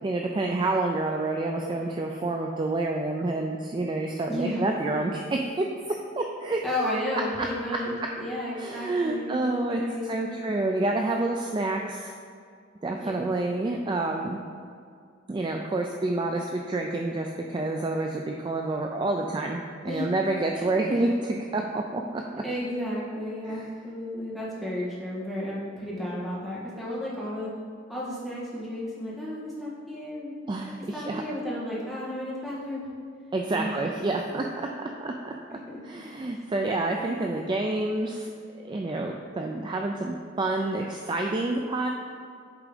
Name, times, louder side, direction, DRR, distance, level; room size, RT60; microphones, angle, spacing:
voice 1, 0.0-6.6 7.7-7.8 8.6-12.1 12.8-14.4 15.3-22.4 23.4-23.7 30.5-31.2 33.3-35.6 35.8-38.3 38.6-41.9, right 2 dB, 25° right, 2 dB, 0.3 m, -28 dB
voice 2, 4.3-4.6 6.6-10.4 13.0-13.1 19.8-20.1 20.6-21.1 22.4-27.5 27.9-30.3 30.9-32.8 33.5-33.8 35.7-35.8, left 1 dB, ahead, -9 dB, 1.8 m, -33 dB
8.3 x 3.6 x 5.0 m, 2.3 s
head